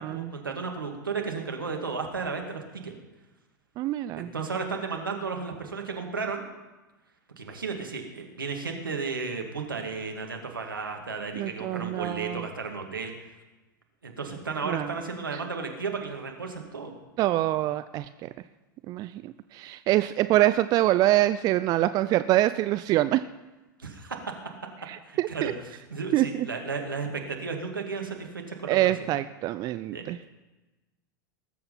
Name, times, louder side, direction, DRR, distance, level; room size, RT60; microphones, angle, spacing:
voice 1, 0.0-2.9 4.2-6.5 7.4-13.1 14.0-16.9 23.8-24.4 25.0-25.5 25.9-28.9 29.9-30.0, right 4 dB, 80° right, 3 dB, 2.3 m, -34 dB
voice 2, 3.8-4.3 11.4-12.4 14.6-14.9 17.2-18.3 18.9-23.3 24.9-25.5 26.1-26.5 28.7-30.2, right 15 dB, 35° right, 13 dB, 0.5 m, -25 dB
19.5 x 7.8 x 5.8 m, 1.1 s
figure-of-eight pair, 90°, 11 cm